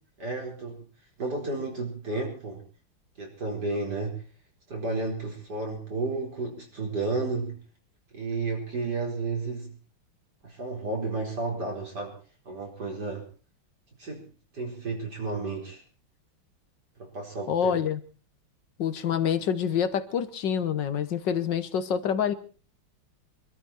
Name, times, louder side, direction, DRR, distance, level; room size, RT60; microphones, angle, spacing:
voice 1, 0.2-0.8 1.2-2.6 3.2-4.2 4.7-7.6 8.1-9.7 10.4-12.2 12.5-13.3 14.0-15.8 17.0-17.8, right 3 dB, 45° right, 0 dB, 5.1 m, -32 dB
voice 2, 17.5-18.0 18.8-22.3, left 8 dB, 60° left, 11 dB, 1.7 m, -27 dB
24.5 x 13.0 x 4.4 m, 0.38 s
omnidirectional pair, 2.4 m